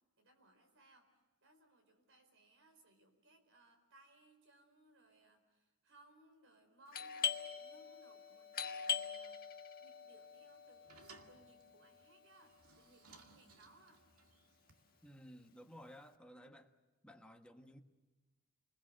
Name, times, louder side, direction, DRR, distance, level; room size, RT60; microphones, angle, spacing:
voice 1, 0.2-1.1 1.4-14.0, right 2 dB, 60° right, 4.7 m, -67 dB
Doorbell, 6.9-12.4, left 7 dB, 45° left, 1.5 m, -42 dB
sound 1, 10.2-15.1, right 4 dB, 75° right, 2.3 m, -63 dB
voice 2, 15.0-16.7 17.0-17.8, equal, 5° left, 1.3 m, -56 dB
29.0 x 21.5 x 7.7 m
head